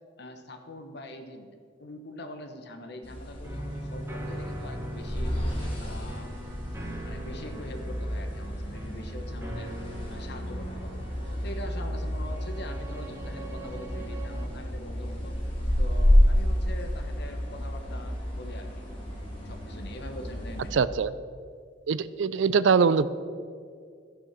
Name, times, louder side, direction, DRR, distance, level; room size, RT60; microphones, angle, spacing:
voice 1, 0.2-5.4 5.8-6.3 7.0-9.7 10.1-11.0 11.4-15.4 15.8-18.8 19.4-21.0, left 1 dB, 65° left, 6 dB, 1.1 m, -43 dB
sound 1, 3.0-20.7, equal, 30° left, 3.1 m, -30 dB
sound 2, 3.4-14.5, right 1 dB, 15° right, 1.6 m, -40 dB
voice 2, 20.7-21.1 21.9-23.1, right 5 dB, 80° right, 16 dB, 0.4 m, -22 dB
14.0 x 6.3 x 6.0 m, 2.1 s
head